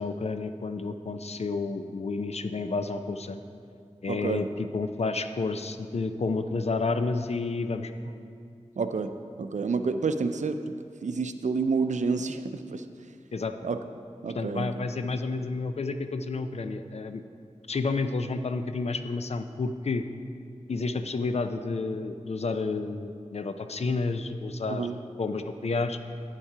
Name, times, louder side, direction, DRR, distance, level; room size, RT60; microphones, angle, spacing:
voice 1, 0.0-3.4 4.0-7.9 13.3-13.5 14.3-17.2 17.7-20.0 20.7-26.0, left 3 dB, 60° left, 9 dB, 0.5 m, -30 dB
voice 2, 4.1-4.5 8.8-9.1 9.4-10.6 11.0-12.8 13.6-13.8 14.2-14.9 24.7-25.0, right 4 dB, 80° right, 9 dB, 0.5 m, -29 dB
8.9 x 7.1 x 4.9 m, 2.3 s
wide cardioid pair, 75°, 12 cm